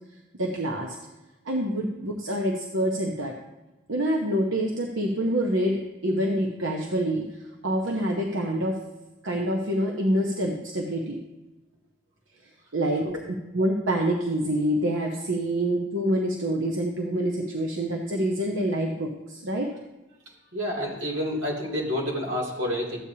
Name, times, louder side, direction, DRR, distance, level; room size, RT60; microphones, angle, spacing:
voice 1, 0.4-0.9 1.5-3.3 3.9-7.2 7.6-8.8 9.2-11.2 12.7-13.1 13.5-19.7, right 1 dB, 90° right, 1 dB, 0.9 m, -26 dB
voice 2, 20.5-23.0, equal, 70° right, -3 dB, 2.7 m, -29 dB
13.5 x 8.4 x 2.8 m, 1.1 s
head